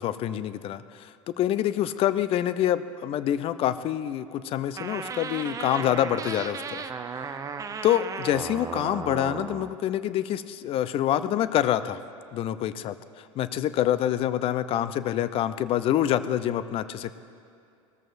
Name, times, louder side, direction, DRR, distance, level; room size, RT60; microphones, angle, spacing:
voice 1, 0.0-6.8 7.8-12.0 12.3-12.9 13.4-17.1, left 11 dB, 35° left, 14 dB, 0.5 m, -26 dB
sound 1, 4.8-9.7, right 5 dB, 20° right, 0.6 m, -35 dB
19.0 x 13.5 x 2.6 m, 2.5 s
figure-of-eight pair, 80°, 17 cm